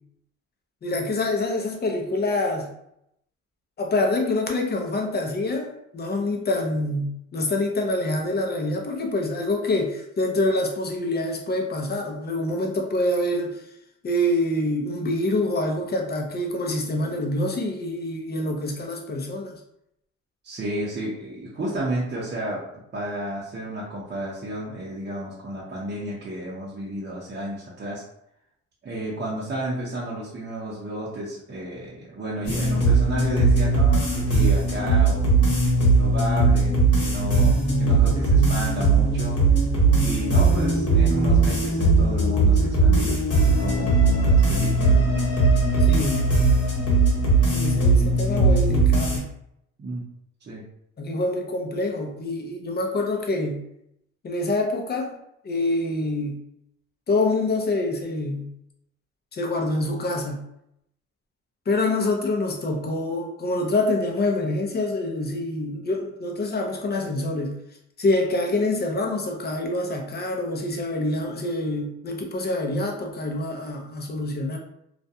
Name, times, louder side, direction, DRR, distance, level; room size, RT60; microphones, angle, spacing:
voice 1, 0.8-2.7 3.8-13.6 14.0-19.6 45.8-46.3 47.5-49.3 51.0-53.6 54.2-55.1 55.4-56.4 57.1-58.5 59.3-60.4 61.7-67.6 68.0-74.6, left 2 dB, 35° left, 2 dB, 0.6 m, -26 dB
voice 2, 20.4-22.6 22.9-28.0 28.8-35.3 35.8-39.4 40.0-45.0 49.8-50.1 50.5-50.6, right 1 dB, 35° right, -6 dB, 0.7 m, -32 dB
sound 1, 32.4-49.2, right 3 dB, 50° left, 1.1 m, -19 dB
2.4 x 2.1 x 2.7 m, 0.77 s
cardioid pair, 90°, 30 cm